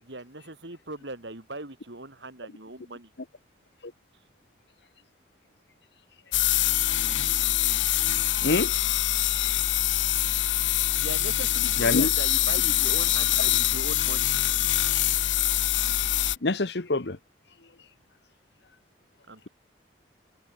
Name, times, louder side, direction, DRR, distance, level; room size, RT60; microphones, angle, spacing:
voice 1, 0.0-3.1 10.7-14.3 19.3-19.5, right 2 dB, 70° right, 3.3 m, -40 dB
sound 1, 6.3-16.4, left 12 dB, 90° left, 2.1 m, -24 dB
voice 2, 8.4-8.7 11.8-12.1 16.4-17.2, left 2 dB, 65° left, 1.1 m, -25 dB
head